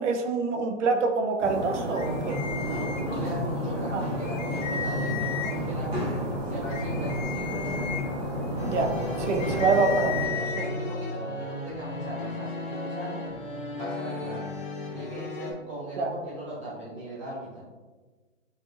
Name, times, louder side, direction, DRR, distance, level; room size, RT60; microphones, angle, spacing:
voice 1, 0.0-2.4 3.9-4.0 8.6-10.7 16.0-16.1, right 4 dB, 70° right, 4 dB, 0.6 m, -26 dB
sound 1, 1.4-10.3, equal, 55° right, 1.4 m, -31 dB
sound 2, 1.9-3.5 3.9-4.0 4.2-5.8 6.3-10.7, left 7 dB, 80° left, 0.6 m, -36 dB
voice 2, 2.5-6.0 6.4-7.6 9.2-9.8 10.3-13.3 13.7-14.5 14.9-17.7, right 1 dB, 25° right, -7 dB, 0.5 m, -39 dB
sound 3, 8.6-15.5, left 1 dB, 45° left, 0.7 m, -35 dB
3.5 x 2.5 x 2.3 m, 1.3 s
hypercardioid pair, 150°, 37 cm